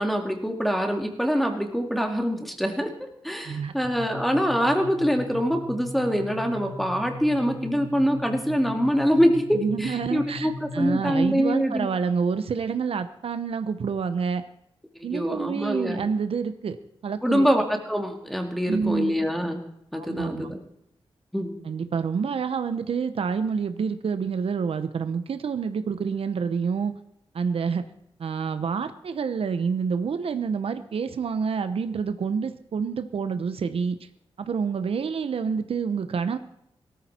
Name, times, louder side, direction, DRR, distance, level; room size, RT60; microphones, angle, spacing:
voice 1, 0.0-11.9 15.1-16.0 17.2-19.6 19.9-20.6 21.3-21.5, equal, ahead, 4 dB, 2.2 m, -24 dB
sound 1, 3.8-11.4, left 2 dB, 60° left, 1.8 m, -38 dB
voice 2, 9.5-14.4 15.0-16.8 17.0-17.4 18.7-19.2 19.9-20.5 21.6-26.9 27.3-27.8 28.2-34.0 34.4-36.4, right 6 dB, 75° right, 11 dB, 0.9 m, -28 dB
18.0 x 13.5 x 4.4 m, 0.75 s
wide cardioid pair, 105°, 10 cm